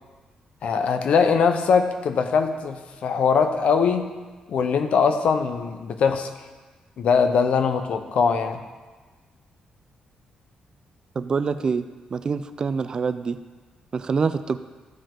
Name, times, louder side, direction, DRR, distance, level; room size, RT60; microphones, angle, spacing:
voice 1, 0.6-4.1 4.5-6.3 7.0-8.6, left 5 dB, 60° left, 7 dB, 0.7 m, -21 dB
voice 2, 11.2-11.9 12.1-13.4 13.9-14.6, right 5 dB, 35° right, 12 dB, 0.3 m, -25 dB
14.0 x 5.1 x 3.8 m, 1.3 s
wide cardioid pair, 160°, 2 cm